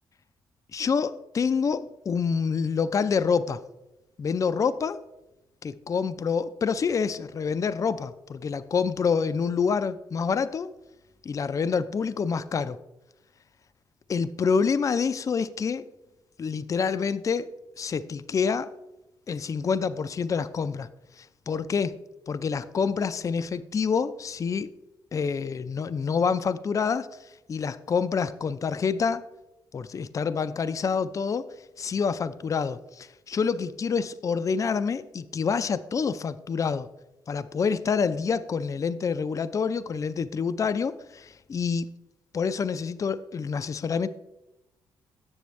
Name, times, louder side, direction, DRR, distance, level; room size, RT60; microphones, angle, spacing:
voice 1, 0.7-3.6 4.2-5.0 5.6-10.7 11.2-12.8 14.1-15.9 16.4-17.5 17.8-18.7 19.3-20.9 21.2-22.0 22.3-24.7 25.1-27.1 27.5-29.2 29.7-31.5 31.8-36.9 37.3-41.9 42.3-44.1, left 5 dB, 35° left, 13 dB, 0.4 m, -27 dB
7.0 x 6.9 x 3.1 m, 0.94 s
supercardioid pair, 60°, 9 cm